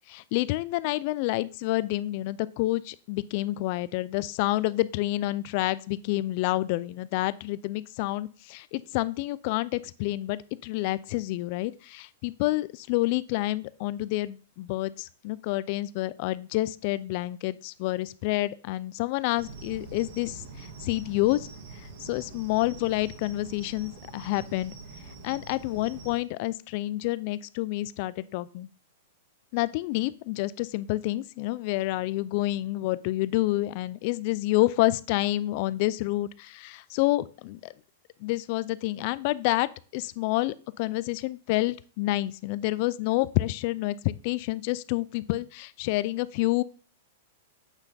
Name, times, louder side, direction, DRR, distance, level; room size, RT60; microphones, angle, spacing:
voice 1, 0.1-20.4 20.8-21.5 22.0-24.7 25.2-28.7 29.5-37.7 38.2-39.7 39.9-46.6, left 18 dB, 45° left, 17 dB, 0.3 m, -28 dB
sound 1, 19.4-26.2, right 3 dB, 60° right, 1.6 m, -44 dB
8.1 x 3.4 x 4.0 m, 0.39 s
hypercardioid pair, 145°, 0 cm